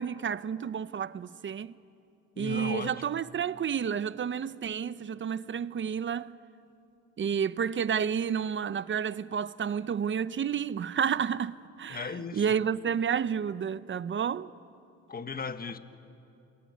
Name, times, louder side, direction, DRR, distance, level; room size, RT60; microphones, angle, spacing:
voice 1, 0.0-1.7 2.4-6.3 7.2-14.5, right 7 dB, 40° right, 0.7 m, -30 dB
voice 2, 2.4-3.0 11.9-12.6 15.1-15.8, left 5 dB, 30° left, 1.4 m, -36 dB
28.0 x 21.5 x 9.6 m
cardioid pair, 90°, 30 cm